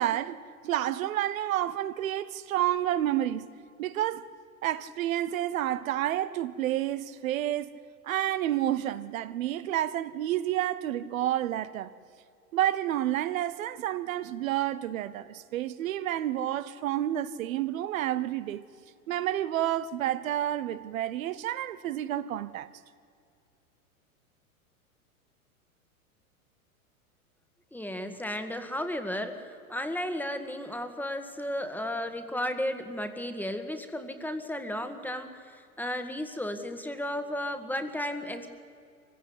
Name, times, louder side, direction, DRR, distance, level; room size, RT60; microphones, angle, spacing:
voice 1, 0.0-3.5 3.8-4.3 4.6-7.8 8.0-11.9 12.5-18.6 19.1-22.7, right 12 dB, 70° right, 1.0 m, -30 dB
voice 2, 27.7-38.5, left 1 dB, 5° left, 1.7 m, -34 dB
23.5 x 16.0 x 9.7 m
hypercardioid pair, 105°, 43 cm